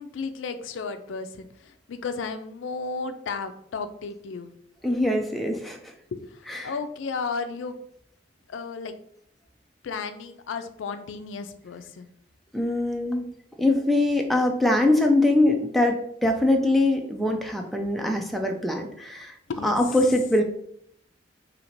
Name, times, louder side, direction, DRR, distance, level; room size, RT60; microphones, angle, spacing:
voice 1, 0.0-4.5 6.1-7.8 8.5-8.9 9.8-12.1 19.5-20.0, left 4 dB, 80° left, 9 dB, 0.4 m, -34 dB
voice 2, 4.8-5.9 6.5-6.7 12.5-13.2 13.6-19.3 19.6-20.4, left 1 dB, ahead, 2 dB, 0.3 m, -23 dB
2.8 x 2.7 x 4.4 m, 0.69 s
head